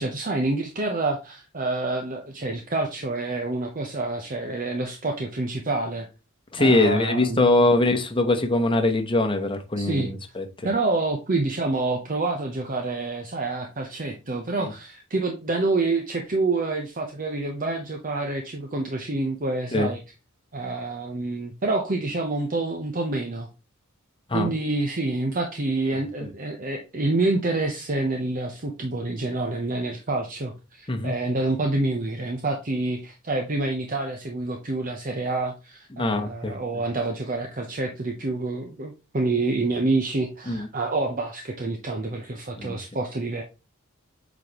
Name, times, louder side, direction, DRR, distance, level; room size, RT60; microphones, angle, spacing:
voice 1, 0.0-6.1 6.6-7.7 9.8-10.1 10.6-20.0 20.5-23.5 24.3-43.4, right 2 dB, 40° right, 0.9 m, -27 dB
voice 2, 6.5-10.5 19.7-19.9 24.3-24.5 30.9-31.1 35.9-36.5 40.5-40.7 42.6-42.8, left 2 dB, 25° left, 1.0 m, -22 dB
8.2 x 4.1 x 3.0 m
head